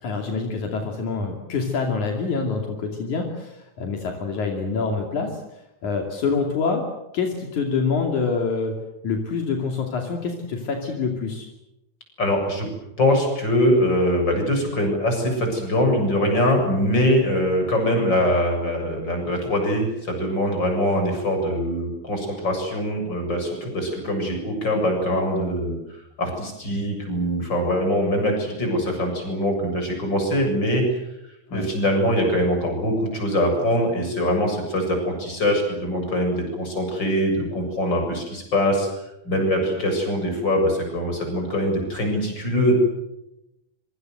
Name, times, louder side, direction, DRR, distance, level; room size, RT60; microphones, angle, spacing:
voice 1, 0.0-5.4 5.8-6.9 7.1-8.8 9.0-11.5 31.5-31.7, left 4 dB, 75° left, 2 dB, 4.1 m, -26 dB
voice 2, 12.2-12.7 13.0-25.8 26.2-30.8 31.5-38.9 39.2-42.8, equal, 35° left, 3 dB, 8.0 m, -23 dB
26.5 x 24.0 x 7.9 m, 0.89 s
omnidirectional pair, 3.5 m